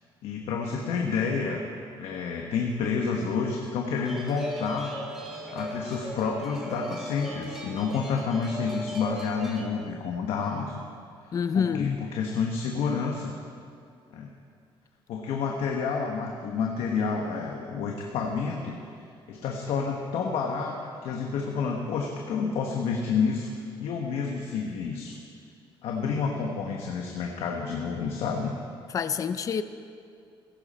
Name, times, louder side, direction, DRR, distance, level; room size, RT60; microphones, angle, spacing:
voice 1, 0.2-1.6 2.0-5.2 5.5-10.8 11.5-13.3 14.1-14.3 15.1-18.8 19.3-23.5 23.8-25.2 25.8-28.5, left 5 dB, 85° left, 1 dB, 1.3 m, -29 dB
sound 1, 4.0-9.6, equal, 5° right, 2.7 m, -38 dB
voice 2, 11.3-12.0 28.9-29.6, left 7 dB, 35° left, 11 dB, 0.5 m, -27 dB
16.0 x 15.5 x 4.3 m, 2.4 s
cardioid pair, 145°, 10 cm